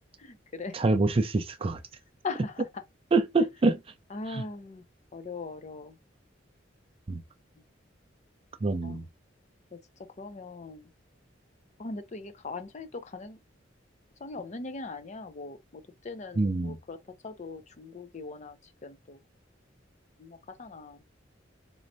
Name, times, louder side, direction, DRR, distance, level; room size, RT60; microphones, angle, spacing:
voice 1, 0.2-0.7 2.2-2.7 4.1-4.8 5.1-5.9 8.8-9.0 9.7-9.8 10.2-10.9 11.8-13.4 14.2-17.0 17.2-19.2 20.2-21.0, left 3 dB, 40° left, 0.6 m, -40 dB
voice 2, 0.7-1.8 3.1-3.8 4.3-4.4 7.1-7.2 8.6-9.0 16.4-16.8, right 3 dB, 30° right, 0.4 m, -25 dB
4.2 x 3.1 x 2.7 m
head